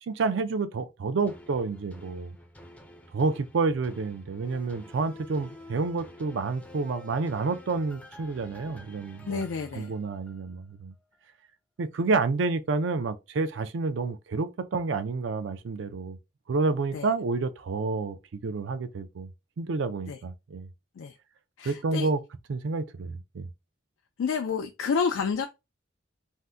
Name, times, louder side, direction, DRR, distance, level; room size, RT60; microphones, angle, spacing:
voice 1, 0.0-2.4 3.1-9.4 9.7-10.9 11.8-16.2 16.5-19.3 19.6-20.7 21.6-22.2 22.5-23.5, right 4 dB, 70° right, 0.4 m, -29 dB
sound 1, 1.3-10.7 11.1-11.2, left 1 dB, 10° left, 0.4 m, -49 dB
voice 2, 9.3-9.9 16.9-17.1 20.1-20.2 21.0-21.2 21.6-22.1 24.2-25.5, left 6 dB, 90° left, 0.4 m, -29 dB
2.7 x 2.1 x 3.4 m
head